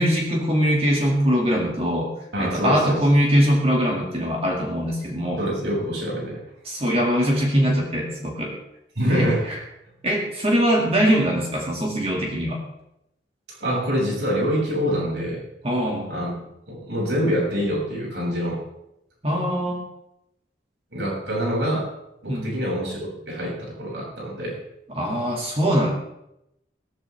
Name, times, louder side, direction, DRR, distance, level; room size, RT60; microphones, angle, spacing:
voice 1, 0.0-2.1 2.4-5.4 6.7-8.6 9.0-9.6 10.0-12.6 15.6-16.1 19.2-19.8 22.3-22.6 24.9-25.9, equal, 30° right, -1 dB, 2.4 m, -22 dB
voice 2, 2.3-3.0 5.4-6.4 9.0-9.4 13.5-15.4 16.1-16.3 16.7-18.6 20.9-21.9 22.2-24.6, equal, 75° right, -3 dB, 7.0 m, -25 dB
17.0 x 14.5 x 3.5 m, 0.82 s
head